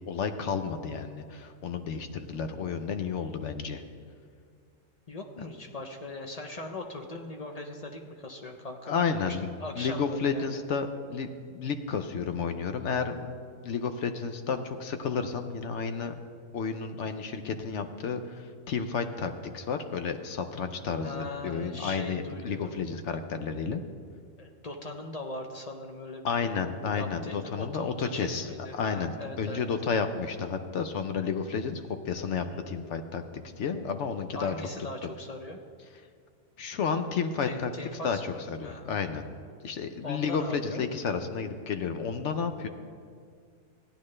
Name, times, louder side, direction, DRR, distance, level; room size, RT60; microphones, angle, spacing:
voice 1, 0.1-3.8 8.9-11.3 11.5-13.3 13.6-16.1 16.5-23.8 26.2-33.2 33.6-34.5 36.6-37.7 38.0-39.3 39.6-42.7, left 5 dB, 65° left, 8 dB, 0.9 m, -31 dB
voice 2, 5.1-10.7 21.0-22.7 24.4-26.7 26.9-29.6 32.2-32.6 34.3-35.6 37.4-38.9 40.0-40.9, left 2 dB, 40° left, 3 dB, 0.6 m, -40 dB
15.5 x 10.0 x 3.2 m, 2.1 s
omnidirectional pair, 1.4 m